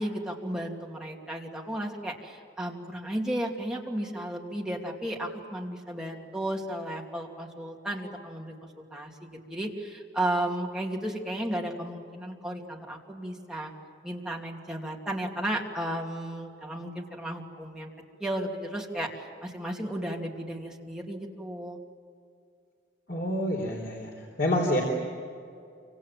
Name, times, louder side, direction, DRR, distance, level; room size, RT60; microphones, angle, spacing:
voice 1, 0.0-13.7 14.0-17.9 18.2-21.8, right 1 dB, 5° right, -1 dB, 2.8 m, -34 dB
voice 2, 23.1-24.1 24.4-24.8, left 1 dB, 55° left, -1 dB, 3.9 m, -27 dB
28.5 x 25.5 x 7.6 m, 2.4 s
head